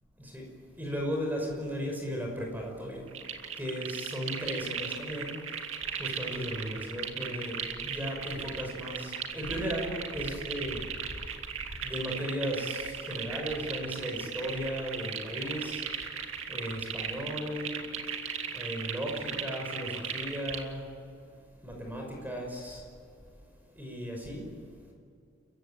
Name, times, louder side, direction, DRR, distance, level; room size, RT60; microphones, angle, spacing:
voice 1, 0.8-3.0 3.6-5.4 5.9-10.9 11.8-15.8 16.5-17.8 18.5-20.9 21.6-22.8 23.8-24.5, equal, 10° right, 1 dB, 5.8 m, -36 dB
sound 1, 3.1-20.6, right 7 dB, 85° right, 2.3 m, -37 dB
30.0 x 16.0 x 9.0 m, 2.4 s
head